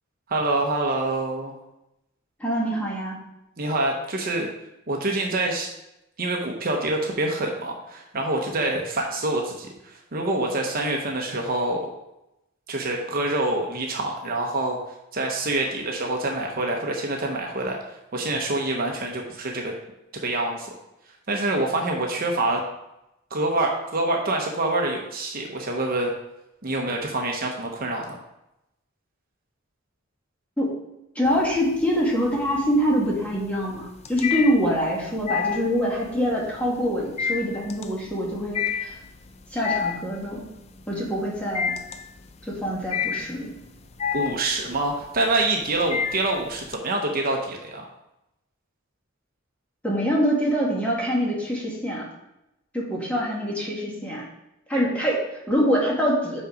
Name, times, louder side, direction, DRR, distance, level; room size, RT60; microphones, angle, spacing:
voice 1, 0.3-1.5 3.6-4.5 4.9-5.7 6.2-11.9 12.7-14.8 15.1-17.8 18.1-19.7 20.2-20.7 21.3-22.6 23.3-26.1 26.6-28.2 44.1-47.9, right 2 dB, 45° right, 0 dB, 0.9 m, -26 dB
voice 2, 2.4-3.2 30.6-30.7 31.1-38.9 39.5-40.5 40.9-41.7 42.5-43.5 49.8-52.1 52.7-54.2 54.7-56.4, equal, 5° left, -4 dB, 1.6 m, -25 dB
sound 1, 31.3-31.9 32.3-46.7, left 7 dB, 30° left, 0.4 m, -30 dB
5.5 x 5.1 x 4.9 m, 0.90 s
head